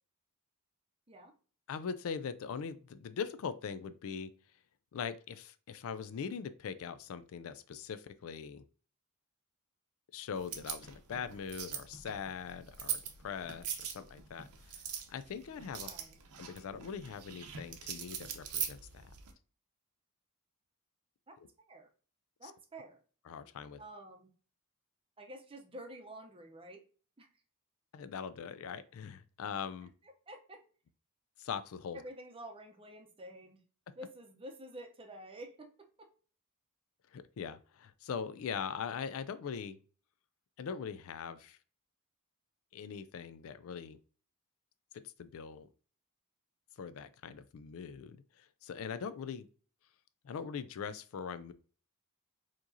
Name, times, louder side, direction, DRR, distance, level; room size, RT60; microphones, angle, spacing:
voice 1, 1.7-4.3 4.9-8.6 10.1-14.5 14.7-14.8 15.1-15.9 16.4-19.1 22.4-22.5 23.3-23.8 27.9-29.9 31.4-32.0 37.1-39.8 40.6-41.6 42.7-44.0 44.9-45.7 46.8-49.5 50.2-51.5, left 6 dB, 65° left, 12 dB, 0.3 m, -41 dB
sound 1, 10.4-19.3, right 8 dB, 85° right, 0.7 m, -42 dB
voice 2, 15.8-16.2 21.3-21.4 21.7-21.9 22.4-23.0 23.8-24.3 25.2-26.8 27.2-27.3 30.0-30.6 31.9-33.6 33.9-35.7 36.0-36.1, right 1 dB, 25° right, 4 dB, 0.7 m, -49 dB
4.6 x 2.9 x 2.7 m, 0.39 s
head